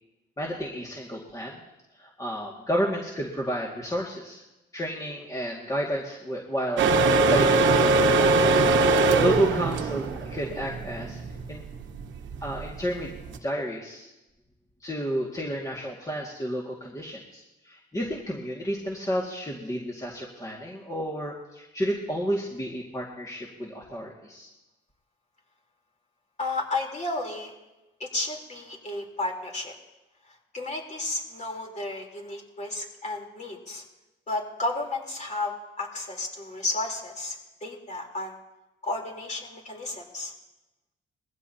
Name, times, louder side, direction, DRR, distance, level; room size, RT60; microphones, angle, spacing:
voice 1, 0.4-1.6 1.9-4.4 4.7-8.6 9.2-11.2 11.5-11.6 12.4-13.1 13.4-14.1 14.8-24.5, equal, 20° left, -3 dB, 2.1 m, -31 dB
sound 1, 6.8-13.4, right 3 dB, 70° right, 1.3 m, -22 dB
voice 2, 26.4-27.5 28.0-29.7 30.3-33.8 34.3-38.4 38.8-40.3, left 2 dB, 35° left, 0 dB, 3.8 m, -33 dB
21.5 x 15.5 x 2.9 m, 1.0 s
cardioid pair, 90°, 20 cm